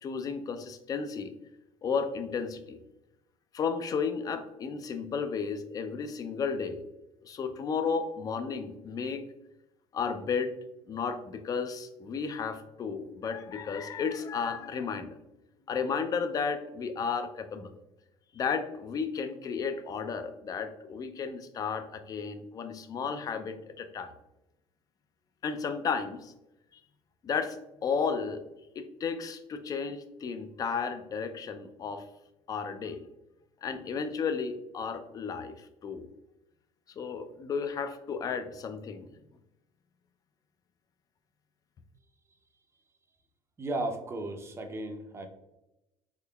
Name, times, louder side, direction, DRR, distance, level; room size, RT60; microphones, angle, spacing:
voice 1, 0.0-1.3 1.8-2.8 3.5-6.8 7.2-9.2 9.9-10.5 10.9-15.2 15.7-17.8 18.3-24.1 25.4-26.3 27.2-28.4 28.8-32.1 32.5-33.0 33.6-36.1 37.0-39.1, left 5 dB, 35° left, 9 dB, 0.4 m, -33 dB
voice 2, 43.6-45.3, right 2 dB, 25° right, 5 dB, 0.5 m, -35 dB
3.6 x 3.3 x 2.2 m, 0.94 s
supercardioid pair, 110°, 11 cm